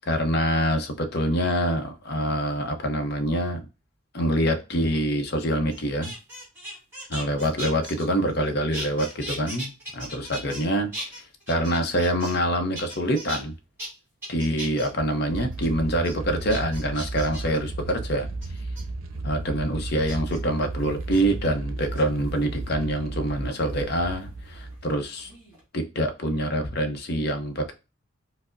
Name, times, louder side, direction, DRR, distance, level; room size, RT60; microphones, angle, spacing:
voice 1, 0.1-3.6 4.1-6.1 7.1-11.2 11.5-13.5 14.3-18.3 19.2-25.3 25.7-27.7, equal, 50° left, 0.6 m, -25 dB
sound 1, 5.7-8.4 8.7-10.6 10.9-12.5 12.7-13.4 13.8-13.9 14.2-14.9 15.3-15.7 16.0-16.1 16.5-17.6 18.4-18.8 20.1-20.4 21.0-21.2 21.8-22.4 23.8-25.0 25.2-25.6, right 1 dB, 10° right, 1.9 m, -38 dB
sound 2, 15.3-25.3, right 2 dB, 75° right, 0.5 m, -34 dB
4.6 x 2.0 x 2.4 m
head